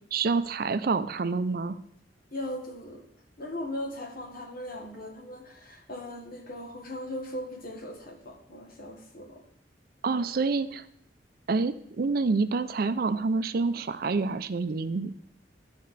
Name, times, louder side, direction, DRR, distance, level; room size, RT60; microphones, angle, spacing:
voice 1, 0.1-1.8 10.0-10.8 11.5-15.1, right 4 dB, 55° right, 12 dB, 0.5 m, -27 dB
voice 2, 2.3-3.0 3.4-9.4, left 1 dB, 55° left, 4 dB, 1.4 m, -38 dB
13.0 x 5.2 x 4.1 m, 0.72 s
head